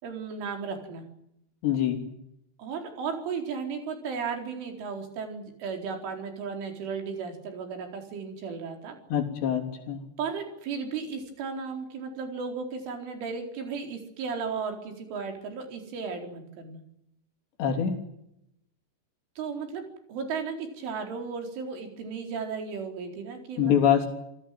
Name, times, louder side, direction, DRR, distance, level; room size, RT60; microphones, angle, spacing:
voice 1, 0.0-1.0 2.6-9.0 10.2-16.8 19.4-23.7, right 5 dB, 80° right, 4 dB, 6.8 m, -35 dB
voice 2, 1.6-2.0 9.1-10.0 17.6-18.0 23.6-24.1, left 8 dB, 65° left, 4 dB, 5.4 m, -24 dB
27.5 x 17.5 x 9.4 m, 0.79 s
omnidirectional pair, 5.5 m